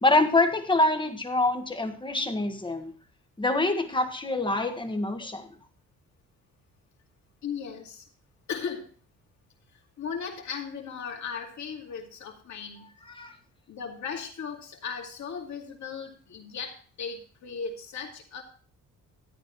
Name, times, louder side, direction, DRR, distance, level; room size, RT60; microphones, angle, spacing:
voice 1, 0.0-2.9 3.4-5.5 13.0-13.3, left 2 dB, 15° left, 6 dB, 1.6 m, -25 dB
voice 2, 7.4-8.0 8.5-8.9 9.7-12.9 13.7-18.4, left 6 dB, 65° left, 2 dB, 2.5 m, -37 dB
12.5 x 9.6 x 3.1 m, 0.41 s
cardioid pair, 90°, 30 cm